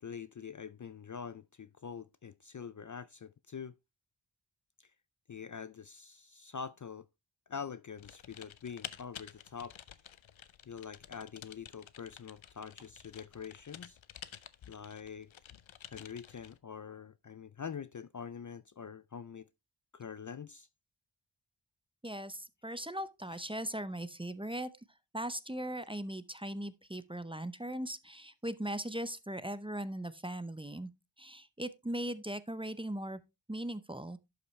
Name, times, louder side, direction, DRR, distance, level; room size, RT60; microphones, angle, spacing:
voice 1, 0.0-3.7 4.8-4.9 5.3-7.1 7.5-9.7 10.7-14.0 14.7-15.3 15.8-19.5 19.9-20.7, left 6 dB, 45° left, 0.4 m, -45 dB
Typing, 8.0-16.6, left 9 dB, 90° left, 0.6 m, -51 dB
voice 2, 22.0-24.7 25.1-30.9 31.2-33.2 33.5-34.2, right 1 dB, 10° right, 0.6 m, -39 dB
11.5 x 5.5 x 3.1 m
wide cardioid pair, 65°, 46 cm